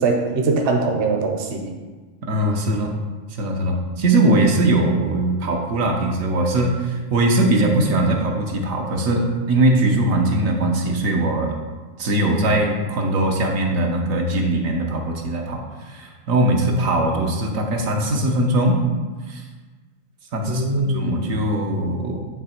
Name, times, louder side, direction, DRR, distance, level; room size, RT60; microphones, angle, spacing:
voice 1, 0.0-1.7 20.5-21.3, right 3 dB, 50° right, 3 dB, 0.9 m, -22 dB
voice 2, 2.3-2.9 3.4-11.5 12.0-18.8 19.3-19.4 20.3-22.3, right 1 dB, 80° right, 1 dB, 1.3 m, -20 dB
9.2 x 3.2 x 4.3 m, 1.3 s
omnidirectional pair, 1.4 m